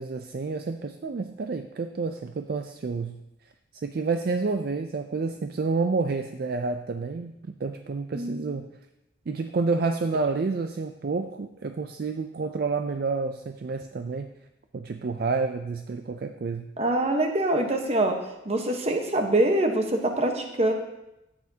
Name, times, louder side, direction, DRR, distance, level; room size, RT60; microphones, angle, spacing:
voice 1, 0.0-3.2 3.8-7.3 7.6-8.7 9.3-14.3 14.7-16.7, right 4 dB, 50° right, 7 dB, 0.4 m, -29 dB
voice 2, 16.8-18.1 18.4-20.7, right 1 dB, 35° right, 3 dB, 1.1 m, -24 dB
13.5 x 8.6 x 2.8 m, 0.90 s
head